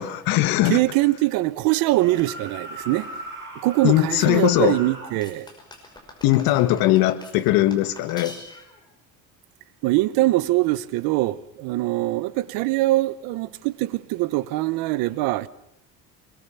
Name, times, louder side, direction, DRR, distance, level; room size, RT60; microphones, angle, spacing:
voice 1, 0.0-0.8 3.8-4.8 6.2-8.4, left 15 dB, 85° left, 1.6 m, -20 dB
voice 2, 0.6-3.1 3.6-5.5 9.8-15.5, right 18 dB, 85° right, 1.1 m, -23 dB
sound 1, 1.7-5.2, right 2 dB, 35° right, 6.6 m, -38 dB
sound 2, 5.2-8.8, left 2 dB, 10° left, 5.6 m, -44 dB
24.5 x 22.0 x 7.1 m
cardioid pair, 140°, 35 cm